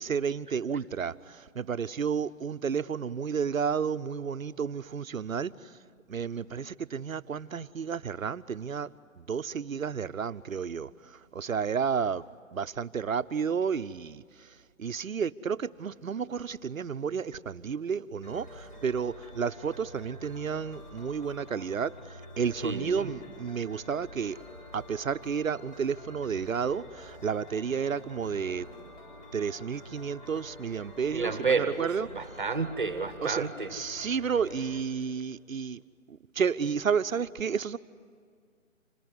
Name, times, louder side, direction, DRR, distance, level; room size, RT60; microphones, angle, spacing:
voice 1, 0.0-5.7 6.1-8.9 9.2-12.2 12.5-14.5 14.8-21.9 22.4-24.4 24.7-28.7 29.3-32.1 33.2-35.8 36.1-37.8, right 6 dB, 70° right, 0.9 m, -31 dB
sound 1, 18.2-34.8, left 1 dB, 35° left, 3.9 m, -48 dB
voice 2, 22.6-23.1 31.1-33.7, right 4 dB, 35° right, 1.3 m, -30 dB
26.5 x 19.5 x 9.6 m
hypercardioid pair, 175°, 41 cm